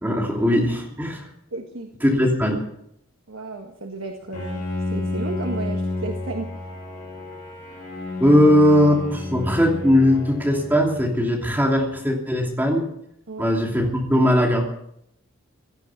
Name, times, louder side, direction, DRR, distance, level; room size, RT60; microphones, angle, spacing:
voice 1, 0.0-1.3 2.0-2.6 8.2-12.8 13.4-14.7, equal, 10° right, -1 dB, 2.9 m, -19 dB
voice 2, 1.5-1.9 3.3-4.6 4.9-6.5 13.3-13.5, right 3 dB, 75° right, 3 dB, 1.7 m, -33 dB
Bowed string instrument, 4.3-11.4, left 2 dB, 35° left, 7.9 m, -31 dB
17.0 x 13.0 x 6.0 m, 0.75 s
head